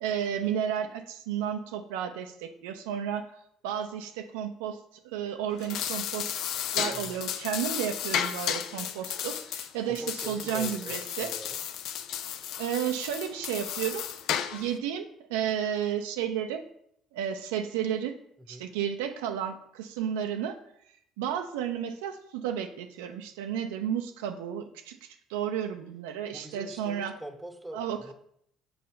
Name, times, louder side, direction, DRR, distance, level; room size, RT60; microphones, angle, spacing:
voice 1, 0.0-0.9 1.3-1.6 1.9-2.2 2.6-3.2 3.6-3.9 4.3-4.7 5.1-6.2 6.8-9.3 9.7-11.3 12.6-13.9 14.6-15.0 15.3-16.6 17.2-18.1 18.8-19.5 20.0-20.5 21.2-22.1 22.4-22.7 23.0-23.1 23.4-24.6 25.3-27.1 27.7-28.0, right 9 dB, 70° right, 6 dB, 0.4 m, -31 dB
sound 1, 5.5-14.8, left 9 dB, 60° left, 0.4 m, -33 dB
voice 2, 6.9-7.2 9.9-11.6 18.4-18.7 26.3-28.1, right 1 dB, 5° right, 6 dB, 1.0 m, -42 dB
5.6 x 4.2 x 5.4 m, 0.70 s
figure-of-eight pair, 55°, 0 cm